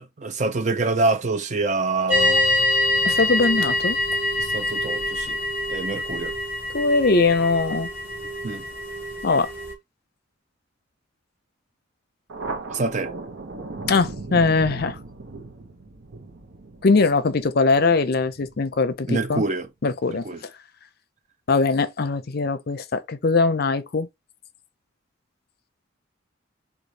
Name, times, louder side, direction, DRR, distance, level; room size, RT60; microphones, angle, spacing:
voice 1, 0.0-2.4 4.4-5.4 5.7-6.3 8.4-8.6 12.7-13.1 19.1-19.7 20.1-20.4, right 3 dB, 35° right, 0.5 m, -26 dB
sound 1, 2.1-3.6, left 12 dB, 10° left, 1.4 m, -30 dB
sound 2, 2.1-9.7, left 1 dB, 10° right, 1.7 m, -25 dB
voice 2, 3.0-4.0 6.7-7.9 9.2-9.5 13.9-15.0 16.8-19.4 19.8-20.3 21.5-24.1, left 4 dB, 50° left, 0.5 m, -21 dB
Thunder, 12.3-19.3, right 3 dB, 75° right, 0.8 m, -37 dB
4.0 x 2.4 x 4.7 m
head